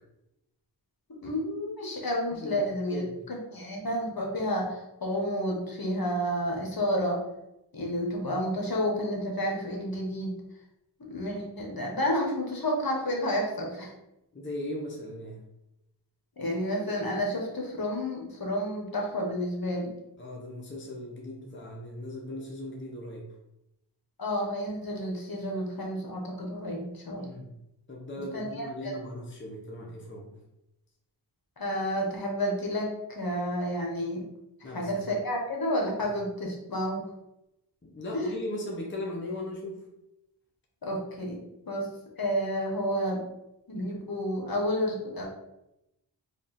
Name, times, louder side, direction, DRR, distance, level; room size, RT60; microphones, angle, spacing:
voice 1, 1.2-3.0 3.3-7.2 7.7-10.3 11.0-13.9 16.4-19.9 24.2-27.4 28.3-28.9 31.6-34.2 34.6-37.1 38.1-38.3 40.8-41.9 42.2-43.2 43.7-45.3, equal, 50° left, -1 dB, 1.1 m, -30 dB
voice 2, 14.3-15.4 20.2-23.2 27.2-27.5 27.9-30.4 34.6-35.0 37.8-39.8, left 1 dB, 25° left, -2 dB, 0.8 m, -38 dB
3.4 x 2.4 x 4.2 m, 0.88 s
wide cardioid pair, 50°, 45 cm